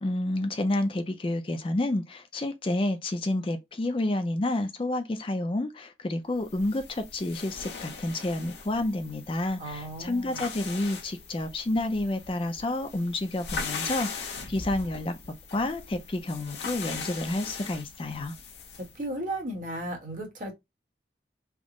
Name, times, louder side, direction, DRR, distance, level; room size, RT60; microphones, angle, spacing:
voice 1, 0.0-15.1 15.5-18.3, left 1 dB, 30° left, 0.4 m, -29 dB
sound 1, 6.4-19.0, left 5 dB, 70° left, 1.0 m, -40 dB
voice 2, 9.6-10.5 18.9-20.5, right 1 dB, 45° right, 1.1 m, -35 dB
3.5 x 2.0 x 3.6 m
head